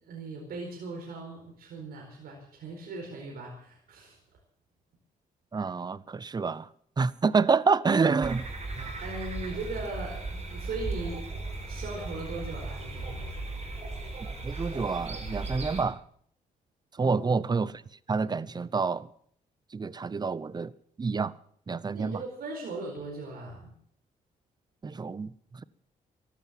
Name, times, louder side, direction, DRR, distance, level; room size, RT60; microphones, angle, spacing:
voice 1, 0.0-4.2 9.0-13.3 17.0-17.2 21.9-23.7, right 3 dB, 75° right, 4.5 m, -39 dB
voice 2, 5.5-6.7 7.0-8.5 8.7-8.9 14.4-16.0 17.0-17.8 18.1-19.1 19.7-20.7 21.0-21.3 21.7-22.2 24.8-25.3, right 4 dB, 25° right, 0.7 m, -27 dB
sound 1, 8.2-15.8, right 2 dB, 45° right, 5.4 m, -37 dB
14.5 x 12.0 x 7.5 m
cardioid pair, 80°, 16 cm